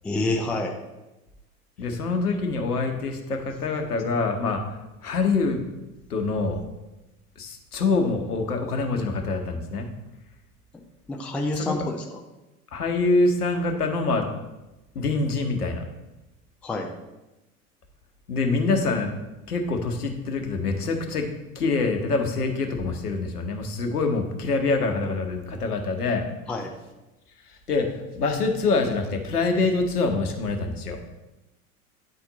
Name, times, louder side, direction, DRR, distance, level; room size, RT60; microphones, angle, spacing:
voice 1, 0.0-0.7 11.1-12.0 16.6-16.9 26.5-26.7, left 2 dB, 5° left, 2 dB, 0.3 m, -27 dB
voice 2, 1.8-4.6 5.0-5.6 6.1-6.6 7.4-9.9 11.5-11.8 12.7-14.3 14.9-15.8 18.3-19.1 19.5-21.3 21.5-26.2 27.5-27.9 28.1-31.0, left 3 dB, 80° left, 4 dB, 1.1 m, -25 dB
8.9 x 4.3 x 3.9 m, 1.0 s
figure-of-eight pair, 85°, 45 cm